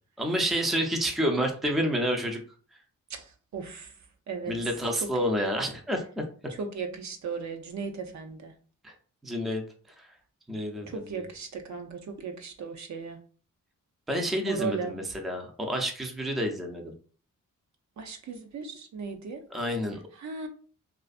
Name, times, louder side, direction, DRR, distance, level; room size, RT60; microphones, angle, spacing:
voice 1, 0.2-2.4 4.5-6.2 8.8-8.9 9.2-9.6 10.0-10.1 10.5-11.2 14.1-16.9 19.5-20.0, equal, ahead, 2 dB, 0.4 m, -29 dB
voice 2, 3.1-3.9 4.3-4.6 5.0-5.1 6.6-8.5 10.9-13.2 14.5-15.0 18.0-19.4 20.2-20.5, right 5 dB, 55° right, 4 dB, 0.5 m, -36 dB
2.4 x 2.4 x 2.4 m, 0.41 s
cardioid pair, 95°, 34 cm